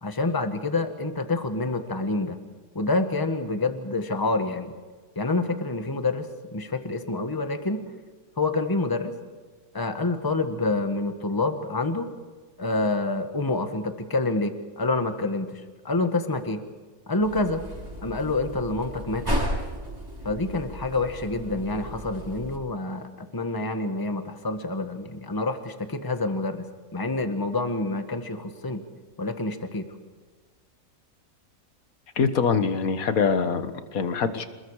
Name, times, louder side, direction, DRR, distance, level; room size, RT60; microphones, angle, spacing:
voice 1, 0.0-2.4 2.7-4.7 5.1-7.8 8.4-9.1 9.7-12.1 12.6-16.6 17.1-17.6 18.0-19.3 20.2-26.6 26.9-28.8 29.2-29.9, left 2 dB, 15° left, 7 dB, 1.5 m, -27 dB
sound 1, 17.2-22.6, equal, 15° right, 7.8 m, -33 dB
voice 2, 32.2-34.5, left 5 dB, 65° left, 10 dB, 1.9 m, -24 dB
27.5 x 21.0 x 4.9 m, 1.4 s
omnidirectional pair, 1.6 m